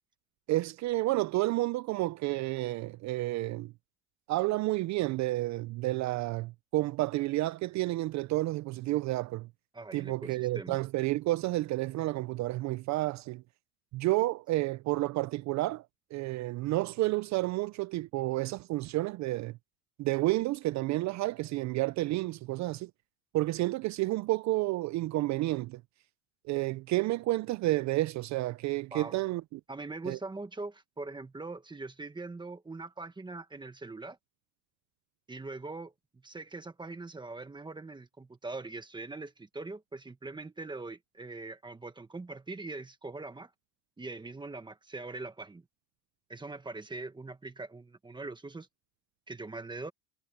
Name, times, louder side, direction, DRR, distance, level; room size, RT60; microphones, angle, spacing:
voice 1, 0.5-3.7 4.3-9.5 9.9-13.4 13.9-15.9 16.1-19.6 20.0-22.9 23.3-25.8 26.5-29.6 30.0-30.2, right 18 dB, 50° right, 0.4 m, -30 dB
voice 2, 9.7-10.8 28.9-29.2 29.7-34.2 35.3-43.5 44.0-45.6 46.3-48.7 49.3-49.9, right 3 dB, 10° right, 1.5 m, -42 dB
cardioid pair, 140°, 38 cm